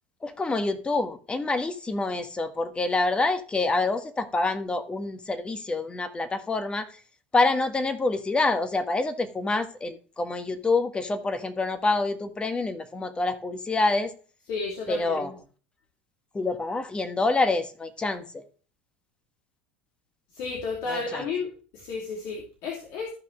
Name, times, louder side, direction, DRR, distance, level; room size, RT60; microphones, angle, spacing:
voice 1, 0.2-6.9 7.3-14.1 14.9-15.3 16.3-18.4 20.9-21.2, left 3 dB, 20° left, 8 dB, 1.6 m, -27 dB
voice 2, 14.5-15.4 20.3-23.1, left 4 dB, 60° left, -1 dB, 2.6 m, -33 dB
14.5 x 5.8 x 3.1 m, 0.38 s
hypercardioid pair, 75°, 5 cm